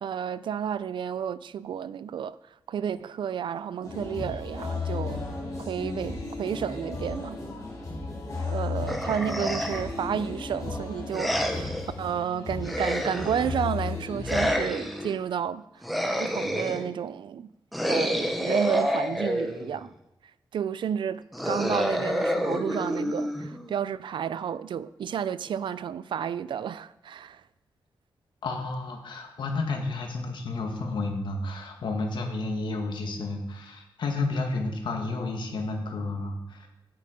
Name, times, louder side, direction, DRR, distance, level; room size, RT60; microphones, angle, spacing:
voice 1, 0.0-2.4 2.7-5.2 5.6-7.4 8.4-15.8 16.2-17.5 17.8-19.9 20.5-27.4, right 8 dB, 65° right, 0.4 m, -31 dB
sound 1, 3.8-14.6, left 3 dB, 40° left, 3.2 m, -34 dB
sound 2, 8.9-10.0 11.1-11.9 12.6-13.6 14.2-15.1 15.8-16.9 17.7-19.8 21.3-23.7, equal, ahead, 0.9 m, -28 dB
voice 2, 28.4-36.7, left 3 dB, 60° left, 1.7 m, -31 dB
8.8 x 8.5 x 5.0 m
wide cardioid pair, 160°, 9 cm